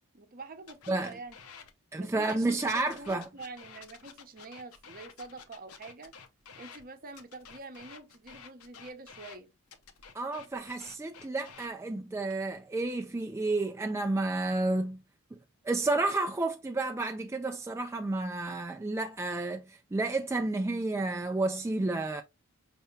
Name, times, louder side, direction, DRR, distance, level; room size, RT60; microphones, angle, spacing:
voice 1, 0.1-1.4 1.9-6.1 6.6-9.5, right 3 dB, 40° right, 0.7 m, -46 dB
sound 1, 0.7-1.7 2.2-6.8 7.1-9.4 9.7-11.7 12.2-12.6, left 6 dB, 85° left, 0.8 m, -51 dB
voice 2, 1.9-3.3 10.1-15.0 15.6-22.2, right 2 dB, 15° right, 0.3 m, -31 dB
5.4 x 3.4 x 2.7 m
head